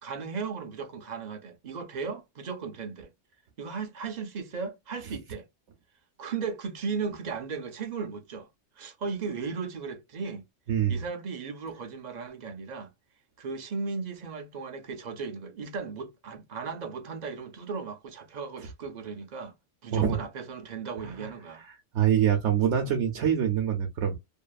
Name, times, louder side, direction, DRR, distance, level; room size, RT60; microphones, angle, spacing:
voice 1, 0.0-3.1 3.6-5.5 6.2-8.5 8.8-10.5 10.9-12.9 13.4-19.5 19.8-21.7, right 5 dB, 50° right, 0.5 m, -36 dB
voice 2, 10.7-11.0 19.9-20.2 21.0-21.3 21.9-24.2, right 9 dB, 85° right, 0.9 m, -25 dB
2.6 x 2.4 x 2.3 m
omnidirectional pair, 1.2 m